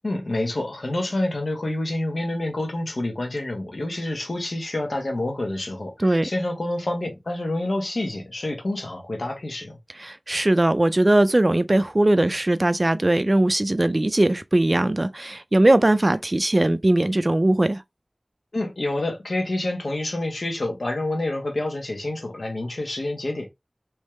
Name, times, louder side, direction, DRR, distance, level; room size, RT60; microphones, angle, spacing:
voice 1, 0.0-9.8 18.5-23.5, left 1 dB, 85° left, 1.3 m, -28 dB
voice 2, 10.0-17.8, right 1 dB, 45° right, 0.5 m, -20 dB
3.6 x 3.2 x 3.1 m
wide cardioid pair, 40°, 0 cm